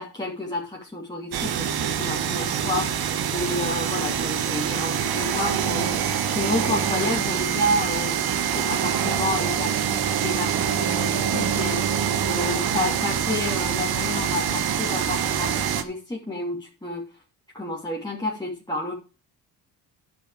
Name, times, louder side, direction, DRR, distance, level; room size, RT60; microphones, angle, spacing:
voice 1, 0.0-8.2 8.5-17.0 17.5-18.9, left 1 dB, 10° left, -5 dB, 2.9 m, -30 dB
sound 1, 1.3-15.8, right 8 dB, 60° right, 1.5 m, -25 dB
10.5 x 7.0 x 5.0 m, 0.35 s
supercardioid pair, 60°, 43 cm